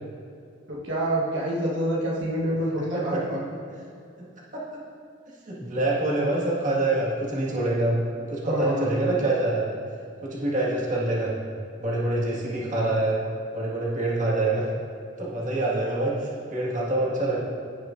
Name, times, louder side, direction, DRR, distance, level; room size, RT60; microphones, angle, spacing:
voice 1, 0.7-3.4 8.4-8.9, right 1 dB, 70° right, -5 dB, 1.3 m, -27 dB
voice 2, 5.5-9.7 10.2-11.4 11.8-13.2 13.5-14.6 15.2-17.4, right 2 dB, 40° right, -6 dB, 1.8 m, -25 dB
15.5 x 6.2 x 2.6 m, 2.4 s
head